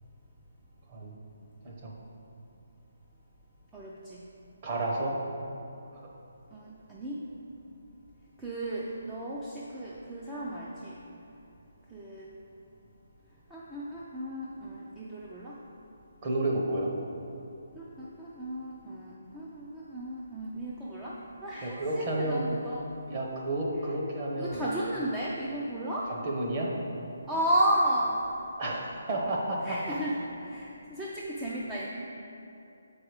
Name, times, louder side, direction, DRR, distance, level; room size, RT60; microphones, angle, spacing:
voice 1, 3.7-4.2 6.5-7.2 8.4-11.0 11.9-12.3 13.5-15.6 17.8-22.9 24.4-26.1 27.3-28.2 29.6-31.9, right 1 dB, 5° right, -6 dB, 0.4 m, -33 dB
voice 2, 4.6-5.2 16.2-16.9 21.6-22.4 23.1-24.6 26.1-26.7 28.6-30.0, right 1 dB, 25° right, -2 dB, 0.9 m, -31 dB
7.1 x 4.7 x 4.9 m, 2.8 s
hypercardioid pair, 175°, 0 cm